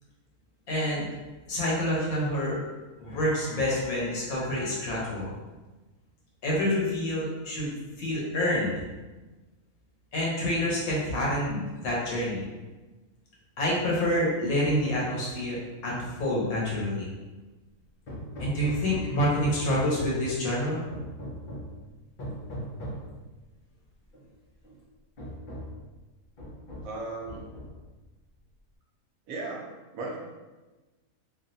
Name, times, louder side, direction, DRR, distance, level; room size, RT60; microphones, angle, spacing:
voice 1, 0.7-1.1 1.5-2.6 3.0-5.4 6.4-7.7 8.0-8.8 10.1-12.4 13.6-17.1 18.4-20.8, left 1 dB, 75° left, -5 dB, 1.3 m, -27 dB
Hammer, 18.1-20.3 20.9-21.8 22.2-23.1 24.1-24.2 24.6-24.8 25.2-25.8 26.4-27.0 27.3-27.9, equal, 50° left, 0.6 m, -38 dB
voice 2, 26.8-27.5 29.3-30.2, right 3 dB, 70° right, -1 dB, 1.0 m, -36 dB
3.3 x 2.5 x 2.6 m, 1.2 s
omnidirectional pair, 1.6 m